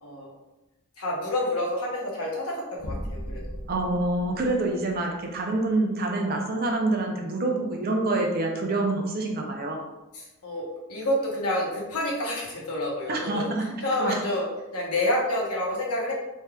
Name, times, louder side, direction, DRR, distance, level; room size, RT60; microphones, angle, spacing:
voice 1, 0.0-0.3 1.0-3.6 10.1-13.5 13.8-14.5 14.7-16.1, left 1 dB, 85° left, -3 dB, 0.9 m, -28 dB
sound 1, 2.8-5.4, equal, 40° left, 0.6 m, -37 dB
voice 2, 3.7-9.8 13.1-13.6 14.0-14.2, right 2 dB, 45° right, 1 dB, 0.5 m, -26 dB
3.3 x 2.7 x 2.3 m, 1.0 s
head